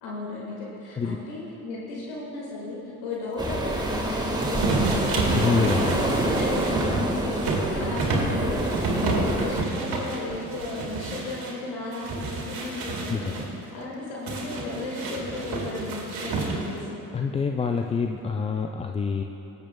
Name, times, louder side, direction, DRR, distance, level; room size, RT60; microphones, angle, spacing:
voice 1, 0.0-5.4 5.7-13.4 13.7-17.1, left 2 dB, 70° left, -4 dB, 1.7 m, -35 dB
sound 1, 3.4-9.6, right 1 dB, 10° right, 1.6 m, -27 dB
sound 2, 4.4-11.5 11.9-13.5 14.3-16.9, right 3 dB, 50° right, 2.1 m, -29 dB
voice 2, 5.3-6.0 9.2-9.3 13.1-13.4 17.1-19.2, left 5 dB, 15° left, 4 dB, 0.3 m, -26 dB
19.0 x 8.1 x 2.2 m, 3.0 s
hypercardioid pair, 50°, 44 cm